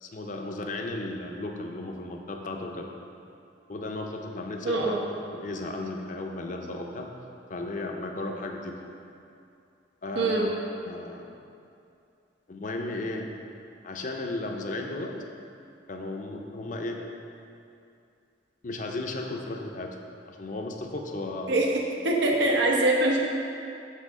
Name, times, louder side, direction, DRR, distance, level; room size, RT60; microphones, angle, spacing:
voice 1, 0.0-2.9 3.7-5.0 5.3-7.1 7.5-8.8 10.0-10.5 10.8-11.3 12.5-13.3 13.8-15.1 15.9-17.0 18.6-20.0 20.3-21.6, left 2 dB, 45° left, 2 dB, 0.6 m, -34 dB
voice 2, 4.6-5.0 10.1-10.5 21.5-21.7 22.0-23.2, right 2 dB, 85° right, -1 dB, 1.0 m, -23 dB
7.5 x 3.5 x 6.3 m, 2.6 s
head